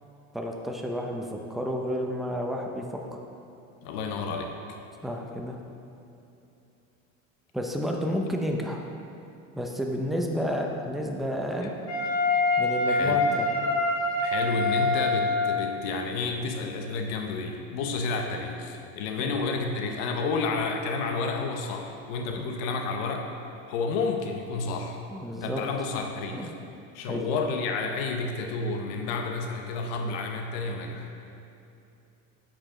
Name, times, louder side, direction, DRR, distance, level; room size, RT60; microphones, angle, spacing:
voice 1, 0.3-3.0 5.0-5.6 7.5-8.8 9.6-11.7 12.6-13.5 19.2-19.3 25.1-25.6 26.3-26.5 27.1-27.2, equal, ahead, 1 dB, 0.5 m, -31 dB
voice 2, 3.8-4.6 12.8-13.2 14.2-23.3 23.7-25.0 25.4-26.5 26.9-31.1, left 4 dB, 85° left, 3 dB, 0.9 m, -30 dB
Wind instrument woodwind instrument, 11.9-15.6, left 3 dB, 55° left, 1.7 m, -25 dB
8.7 x 5.1 x 3.7 m, 2.8 s
cardioid pair, 140°, 31 cm